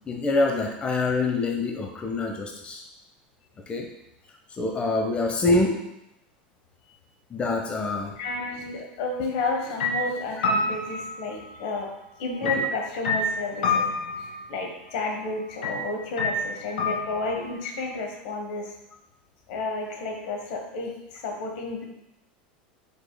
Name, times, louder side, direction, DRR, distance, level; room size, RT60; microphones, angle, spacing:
voice 1, 0.1-2.8 3.7-3.9 4.6-5.8 7.3-8.1 12.4-12.5, left 2 dB, 20° left, 1 dB, 0.6 m, -25 dB
voice 2, 8.2-11.9 12.2-18.7 19.5-21.9, left 3 dB, 70° left, 2 dB, 1.1 m, -31 dB
sound 1, 9.4-9.5 9.8-11.7 12.4-14.5 15.6-15.8 16.2-17.5, left 2 dB, 85° left, 0.8 m, -28 dB
4.8 x 4.8 x 2.2 m, 0.86 s
hypercardioid pair, 105°, 5 cm